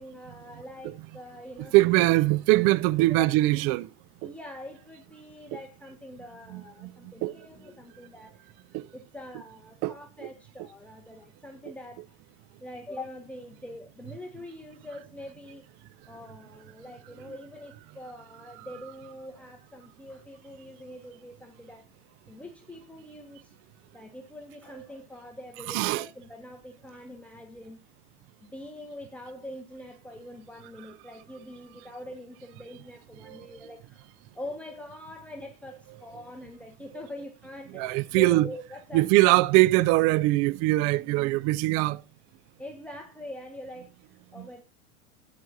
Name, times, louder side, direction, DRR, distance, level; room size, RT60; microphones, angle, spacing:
voice 1, 0.0-2.1 3.2-3.3 4.2-8.5 8.9-12.1 12.6-15.6 16.1-21.8 22.3-23.5 23.9-27.8 28.4-39.1 42.6-44.6, left 1 dB, 5° left, 1.3 m, -44 dB
voice 2, 1.7-3.9 4.2-4.3 6.5-7.3 8.7-8.9 9.8-9.9 25.7-26.1 33.3-33.5 37.7-38.5 38.9-42.0 44.4-44.5, right 19 dB, 40° right, 0.4 m, -22 dB
13.0 x 9.6 x 2.6 m
hypercardioid pair, 90°, 40 cm